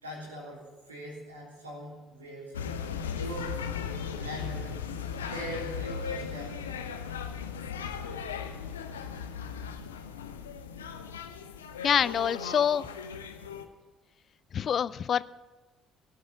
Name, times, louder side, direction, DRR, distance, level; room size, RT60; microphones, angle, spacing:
voice 1, 0.0-2.5 3.1-3.5 4.1-4.7 5.3-6.5 7.9-8.3, right 1 dB, 85° right, -3 dB, 3.3 m, -41 dB
sound 1, 2.5-13.7, left 6 dB, 80° left, 0.8 m, -37 dB
voice 2, 11.8-12.9 14.5-15.2, left 8 dB, 45° left, 19 dB, 0.4 m, -26 dB
17.5 x 8.4 x 6.9 m, 1.3 s
figure-of-eight pair, 50°, 0 cm